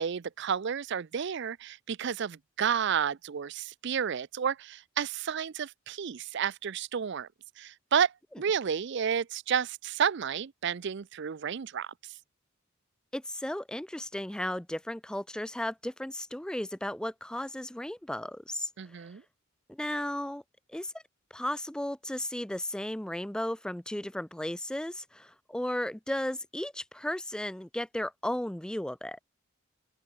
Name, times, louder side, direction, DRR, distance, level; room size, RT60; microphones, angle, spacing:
voice 1, 0.0-7.3 7.6-11.9 18.8-19.2, right 7 dB, 60° right, 0.5 m, -31 dB
voice 2, 13.1-19.1 19.7-20.4 20.7-20.9 21.3-29.2, left 1 dB, 5° left, 0.4 m, -35 dB
open air
head